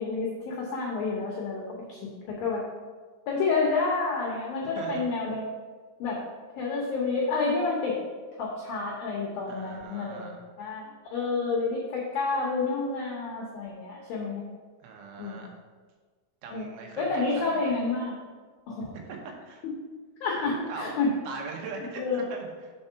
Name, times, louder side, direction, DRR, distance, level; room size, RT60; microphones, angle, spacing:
voice 1, 0.0-2.6 3.3-5.4 6.0-6.2 6.6-8.0 8.4-14.4 15.2-15.4 16.5-16.7 17.0-18.2 18.7-18.9 19.6-19.7 20.2-21.1 22.0-22.2, left 4 dB, 80° left, -3 dB, 2.1 m, -29 dB
voice 2, 4.8-5.1 9.5-10.4 14.8-15.6 16.4-17.1 17.4-17.8 19.1-19.6 20.4-20.9 21.2-22.7, right 4 dB, 85° right, 1 dB, 3.4 m, -40 dB
7.0 x 4.4 x 5.6 m, 1.5 s
omnidirectional pair, 5.5 m